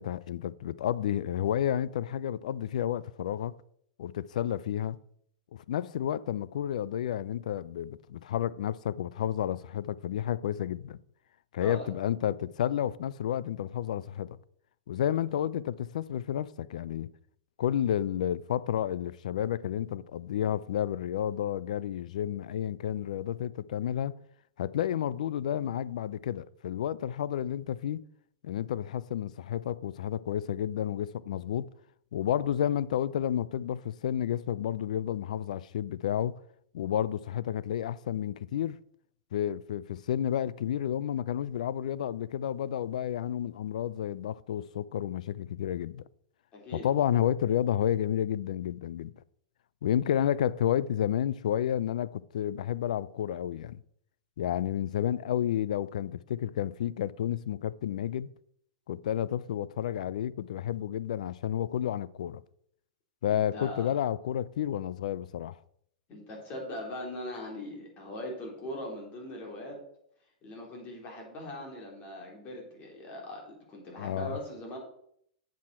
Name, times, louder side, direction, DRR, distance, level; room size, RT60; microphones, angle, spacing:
voice 1, 0.0-3.5 4.0-5.0 5.5-11.0 11.5-14.3 14.9-17.1 17.6-24.1 24.6-28.0 28.4-31.7 32.1-36.4 36.7-38.8 39.3-46.0 46.7-49.1 49.8-53.8 54.4-58.3 58.9-62.4 63.2-65.5 74.0-74.4, left 10 dB, 75° left, 0.4 m, -31 dB
voice 2, 46.5-46.9 63.3-63.9 66.1-69.8 70.4-74.8, left 1 dB, 35° left, 3.8 m, -40 dB
8.3 x 7.5 x 4.3 m
hypercardioid pair, 120°, 4 cm